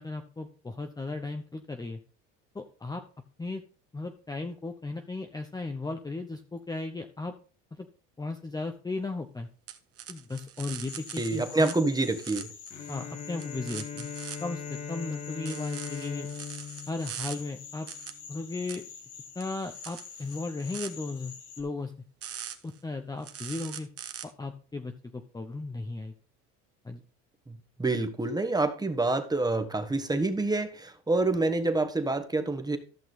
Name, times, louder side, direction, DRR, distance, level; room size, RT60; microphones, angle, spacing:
voice 1, 0.0-2.0 2.5-3.0 3.4-3.6 3.9-7.3 7.7-7.9 8.2-9.5 10.1-11.7 12.9-14.1 14.4-16.3 16.9-17.9 18.3-18.8 19.3-21.9 22.6-23.9 24.4-26.1 26.8-27.0, left 3 dB, 10° left, 5 dB, 0.8 m, -36 dB
sound 1, 9.7-11.7 12.0-12.9 13.4-14.4 15.4-17.3 17.9-18.1 18.7-18.8 19.4-20.9 22.2-22.8 23.2-24.2, right 9 dB, 45° right, 1.3 m, -41 dB
sound 2, 10.9-21.6, left 7 dB, 80° left, 2.0 m, -47 dB
voice 2, 11.2-12.5 27.5-32.8, right 2 dB, 10° right, 8 dB, 1.4 m, -27 dB
Bowed string instrument, 12.7-18.2, left 6 dB, 50° left, 1.7 m, -40 dB
13.5 x 6.0 x 4.0 m, 0.38 s
supercardioid pair, 90°, 33 cm